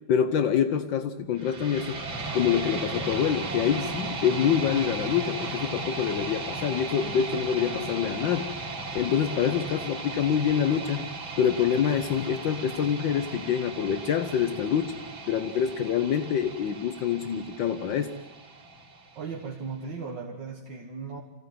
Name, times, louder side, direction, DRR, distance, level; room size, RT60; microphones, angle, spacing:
voice 1, 0.1-2.0 2.3-8.5 8.9-15.0 15.3-18.1, left 8 dB, 75° left, 9 dB, 1.6 m, -26 dB
sound 1, 1.4-19.4, right 3 dB, 85° right, 3.9 m, -36 dB
voice 2, 19.2-21.2, right 5 dB, 65° right, 2 dB, 2.2 m, -37 dB
25.5 x 16.5 x 9.4 m, 1.3 s
omnidirectional pair, 2.1 m